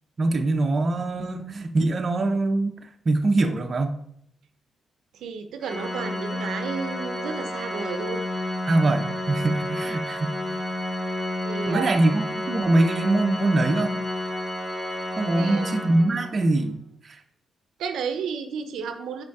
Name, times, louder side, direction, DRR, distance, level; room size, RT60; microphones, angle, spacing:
voice 1, 0.2-2.8 3.1-3.9 8.7-10.6 11.7-13.9 15.2-16.8 17.0-17.2, right 2 dB, 35° right, 5 dB, 0.6 m, -23 dB
voice 2, 5.1-8.2 11.4-12.0 15.3-15.7 17.8-19.2, right 6 dB, 85° right, 7 dB, 0.6 m, -32 dB
Organ, 5.6-16.4, left 1 dB, 15° left, 2.0 m, -30 dB
5.1 x 4.3 x 4.7 m, 0.70 s
cardioid pair, 115°, 0 cm